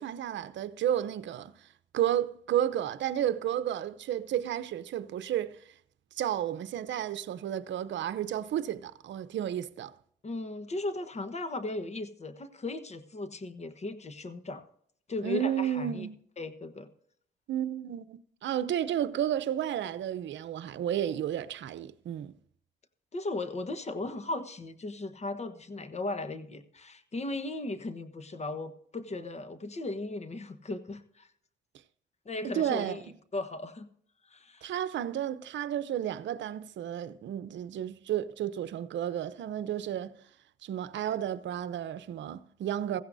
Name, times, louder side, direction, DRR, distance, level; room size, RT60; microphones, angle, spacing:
voice 1, 0.0-1.5 1.9-5.6 6.2-9.9 15.2-16.2 17.5-22.3 32.4-33.0 34.6-40.1 40.6-43.0, right 10 dB, 65° right, 0.8 m, -32 dB
voice 2, 10.2-14.6 15.1-16.1 16.4-16.9 23.1-31.3 32.2-33.0 33.3-33.9 34.2-34.7, left 2 dB, 35° left, 1.3 m, -37 dB
16.0 x 15.0 x 2.7 m
cardioid pair, 90°, 20 cm